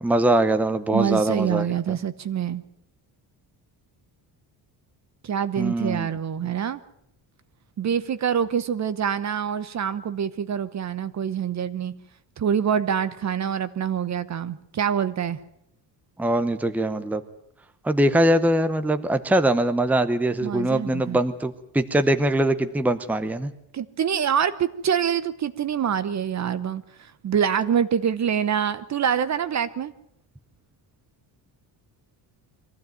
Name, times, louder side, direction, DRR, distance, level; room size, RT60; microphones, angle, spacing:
voice 1, 0.0-2.0 5.6-6.1 16.2-17.2 17.8-23.5, right 1 dB, 5° right, 10 dB, 0.8 m, -22 dB
voice 2, 0.9-2.6 5.2-6.8 7.8-11.9 12.4-15.4 20.4-21.2 23.7-29.9, right 8 dB, 40° right, 14 dB, 1.0 m, -25 dB
23.0 x 15.0 x 9.1 m, 0.75 s
cardioid pair, 155°, 43 cm